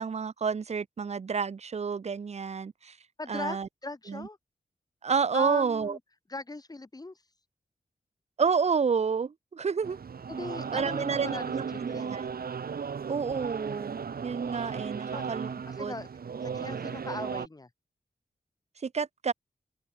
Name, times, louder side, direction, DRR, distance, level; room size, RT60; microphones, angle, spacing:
voice 1, 0.0-3.0 3.3-3.7 4.1-4.3 5.0-6.0 8.4-10.0 10.7-12.3 13.1-15.9 18.8-19.3, right 5 dB, 45° right, 0.8 m, -30 dB
voice 2, 3.2-4.4 5.3-6.0 6.3-7.2 10.3-12.1 15.1-15.2 15.7-16.1 16.4-17.7, left 2 dB, 25° left, 4.4 m, -39 dB
sound 1, 9.8-17.5, right 6 dB, 85° right, 5.9 m, -36 dB
wide cardioid pair, 140°, 15 cm